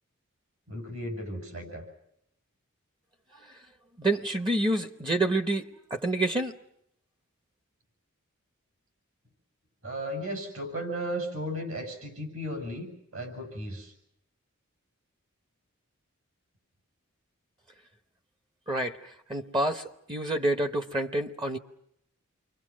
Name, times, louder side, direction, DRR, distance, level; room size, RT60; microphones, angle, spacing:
voice 1, 0.7-1.8 9.8-13.9, equal, 65° right, 4 dB, 7.9 m, -35 dB
voice 2, 4.0-5.6 5.9-6.5 18.7-19.0 19.3-21.6, right 2 dB, 20° right, 8 dB, 1.0 m, -28 dB
29.5 x 23.5 x 6.3 m, 0.76 s
head